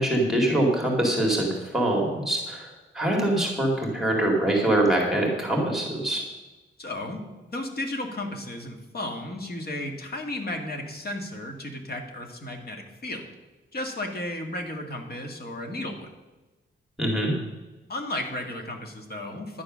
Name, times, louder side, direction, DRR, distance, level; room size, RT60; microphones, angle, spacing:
voice 1, 0.0-6.2 17.0-17.3, right 1 dB, ahead, -1 dB, 2.2 m, -24 dB
voice 2, 6.8-7.2 7.5-13.3 13.7-16.1 17.9-19.6, left 1 dB, 50° left, 3 dB, 1.9 m, -34 dB
11.0 x 9.7 x 6.2 m, 1.1 s
wide cardioid pair, 180°, 21 cm